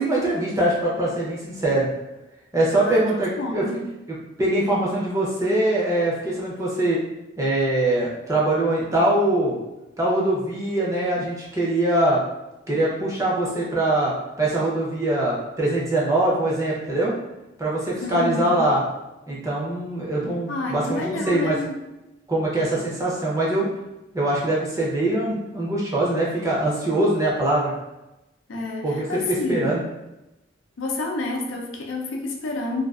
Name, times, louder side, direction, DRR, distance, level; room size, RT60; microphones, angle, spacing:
voice 1, 0.0-1.9 2.5-3.6 4.4-7.0 7.4-9.6 10.0-12.2 12.7-17.1 17.6-18.8 19.3-21.5 22.3-23.7 24.1-27.7 28.8-29.8, right 1 dB, 15° right, -5 dB, 0.5 m, -23 dB
voice 2, 3.4-3.9 18.0-18.6 20.5-21.8 28.5-29.8 30.8-32.8, left 2 dB, 85° left, 0 dB, 0.5 m, -29 dB
2.5 x 2.3 x 2.3 m, 0.96 s
head